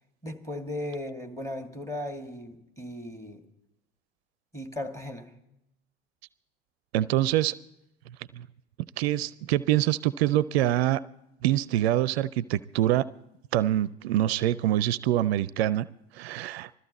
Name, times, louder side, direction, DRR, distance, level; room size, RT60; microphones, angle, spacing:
voice 1, 0.2-3.4 4.5-5.3, left 1 dB, 10° left, 5 dB, 2.2 m, -36 dB
voice 2, 6.9-7.5 8.3-8.5 9.0-11.0 11.4-13.1 13.5-15.9 16.1-16.7, right 13 dB, 70° right, 18 dB, 0.5 m, -25 dB
21.0 x 14.0 x 4.1 m, 0.85 s
figure-of-eight pair, 65°, 33 cm